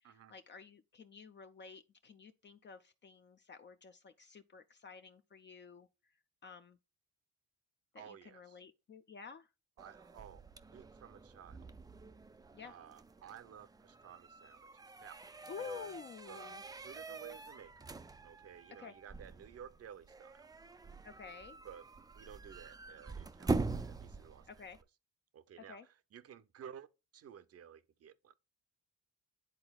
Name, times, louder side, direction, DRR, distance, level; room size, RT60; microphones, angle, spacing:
voice 1, 0.0-5.9 6.4-6.8 7.9-9.5 12.5-12.8 15.5-16.6 18.8-18.9 21.0-21.6 24.5-24.8 25.7-25.9, left 6 dB, 35° left, 0.5 m, -51 dB
voice 2, 8.0-8.6 9.8-10.4 10.7-11.7 12.6-14.7 15.0-15.2 15.6-15.9 16.3-17.7 18.2-20.5 21.6-24.6 25.3-26.9 27.1-28.3, right 8 dB, 55° right, 0.7 m, -54 dB
sound 1, 9.8-24.8, right 3 dB, 15° right, 0.4 m, -44 dB
10.5 x 3.9 x 2.3 m
cardioid pair, 90°, 30 cm